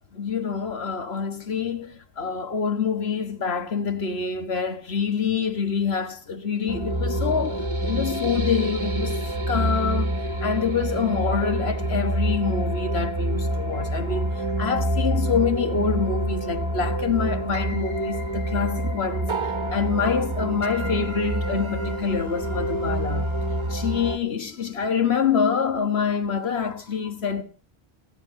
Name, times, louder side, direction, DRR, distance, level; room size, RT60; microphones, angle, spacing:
voice 1, 0.1-9.2 9.5-10.1 10.4-19.3 19.7-23.4 23.7-27.4, left 6 dB, 75° left, 1.8 m, -26 dB
sound 1, 6.7-24.2, right 1 dB, 25° right, 1.4 m, -27 dB
30.0 x 11.0 x 2.8 m
omnidirectional pair, 1.1 m